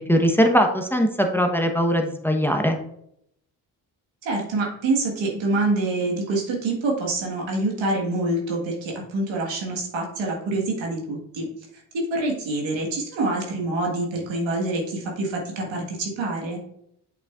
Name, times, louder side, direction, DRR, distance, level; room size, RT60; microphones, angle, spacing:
voice 1, 0.1-2.8, equal, 5° left, 4 dB, 1.0 m, -20 dB
voice 2, 4.2-11.5 11.9-16.6, right 2 dB, 90° right, -1 dB, 1.7 m, -26 dB
7.9 x 6.1 x 2.4 m, 0.73 s
supercardioid pair, 55°, 44 cm